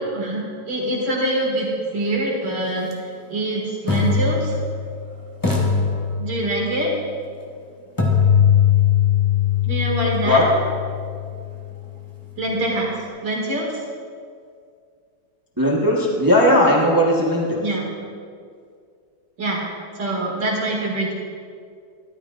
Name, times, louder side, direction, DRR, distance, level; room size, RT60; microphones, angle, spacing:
voice 1, 0.0-2.9 3.3-4.5 6.2-6.9 9.6-10.4 12.4-13.8 17.6-17.9 19.4-19.6 20.0-21.1, right 1 dB, 75° right, -2 dB, 2.8 m, -24 dB
sound 1, 2.8-2.9 3.9-5.0 5.4-6.7 8.0-11.9, left 7 dB, 15° left, 1.0 m, -20 dB
voice 2, 15.6-17.6, left 1 dB, 15° right, -3 dB, 0.9 m, -17 dB
13.0 x 12.0 x 2.5 m, 2.2 s
omnidirectional pair, 1.9 m